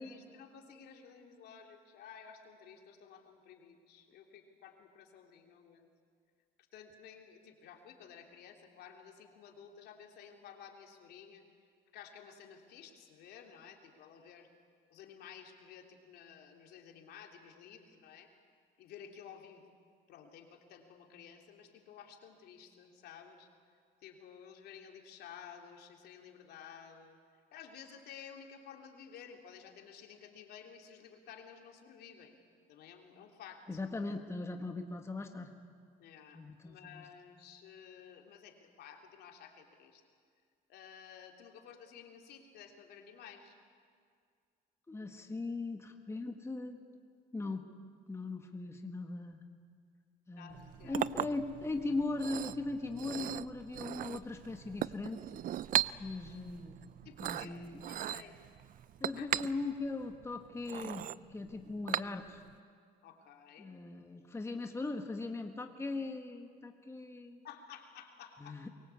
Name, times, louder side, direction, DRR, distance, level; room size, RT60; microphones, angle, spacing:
voice 1, 0.0-5.9 6.7-11.4 11.9-14.5 14.9-18.3 18.8-19.6 20.1-23.5 24.0-27.2 27.5-32.3 32.7-33.8 36.0-40.0 40.7-43.6 50.3-51.1 57.0-58.3 59.0-59.3 63.0-63.7 67.4-68.6, left 7 dB, 75° left, 3 dB, 3.2 m, -53 dB
voice 2, 33.7-35.5 36.3-37.0 44.9-46.8 47.3-47.7 48.1-49.4 50.3-55.2 56.0-56.8 57.2-57.8 59.0-62.4 63.6-67.4 68.4-68.7, left 3 dB, 15° left, 4 dB, 1.6 m, -39 dB
Chink clink, 50.5-62.5, right 11 dB, 55° right, 0.5 m, -39 dB
23.0 x 23.0 x 8.4 m, 2.2 s
cardioid pair, 110°, 17 cm